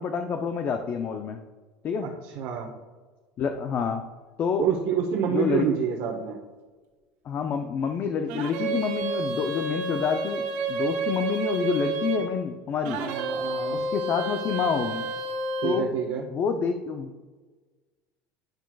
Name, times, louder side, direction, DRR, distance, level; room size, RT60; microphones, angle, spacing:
voice 1, 0.0-1.4 1.8-2.1 3.4-4.0 4.4-4.7 5.3-5.7 7.2-13.0 13.7-15.1 15.6-15.9 16.3-17.2, left 6 dB, 30° left, 6 dB, 0.4 m, -28 dB
voice 2, 2.0-2.7 4.6-6.4 13.0-13.8 15.6-16.3, right 8 dB, 55° right, 0 dB, 0.9 m, -28 dB
sound 1, 8.3-12.3 12.8-15.9, right 3 dB, 80° right, 1.7 m, -30 dB
10.5 x 5.9 x 2.3 m, 1.3 s
cardioid pair, 145°, 6 cm